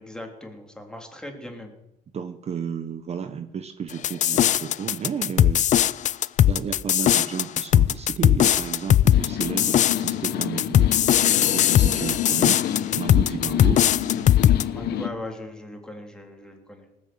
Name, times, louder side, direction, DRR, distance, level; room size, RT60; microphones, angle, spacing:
voice 1, 0.0-1.7 14.7-16.8, left 1 dB, 5° left, 2 dB, 3.4 m, -39 dB
voice 2, 2.1-5.6 6.5-10.9 11.4-12.6 12.9-13.9 14.8-15.0, right 7 dB, 40° right, 9 dB, 1.0 m, -32 dB
sound 1, 4.0-14.6, left 11 dB, 45° left, 0.5 m, -19 dB
sound 2, 9.1-15.1, left 10 dB, 70° left, 1.2 m, -29 dB
19.0 x 8.5 x 7.8 m, 0.88 s
cardioid pair, 110°, 17 cm